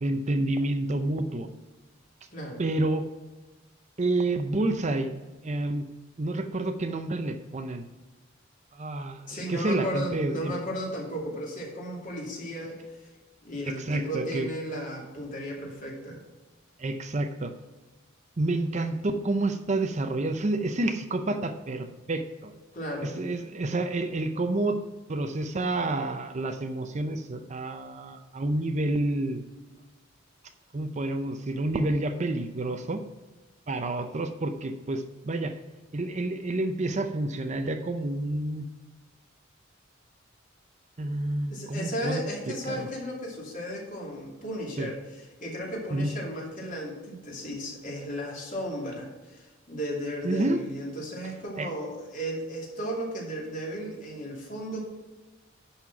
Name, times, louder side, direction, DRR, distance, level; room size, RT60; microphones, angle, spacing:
voice 1, 0.0-1.5 2.6-3.1 4.0-5.1 5.4-5.9 6.2-7.8 8.7-10.5 13.7-14.5 16.8-17.5 18.4-22.5 23.0-24.8 25.1-29.4 30.7-33.0 33.7-35.6 35.9-38.7 41.0-42.9 44.8-44.9 45.9-46.1 50.2-50.6 51.6-51.7, right 2 dB, 35° right, 7 dB, 0.6 m, -29 dB
voice 2, 2.3-2.6 9.3-12.8 13.4-16.2 22.7-23.1 41.5-45.0 45.4-54.8, equal, 40° left, -3 dB, 2.6 m, -35 dB
10.5 x 4.3 x 5.9 m, 1.2 s
head